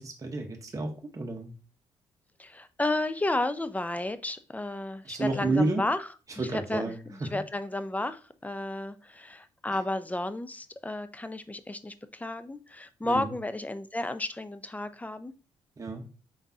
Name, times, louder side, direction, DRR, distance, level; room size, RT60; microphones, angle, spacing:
voice 1, 0.0-1.5 5.0-5.8 6.4-7.3 13.0-13.3 15.8-16.0, right 2 dB, 30° right, 2 dB, 0.9 m, -31 dB
voice 2, 2.4-6.1 6.5-15.3, left 2 dB, 15° left, 12 dB, 0.5 m, -32 dB
4.7 x 3.7 x 2.7 m, 0.36 s
supercardioid pair, 60°, 11 cm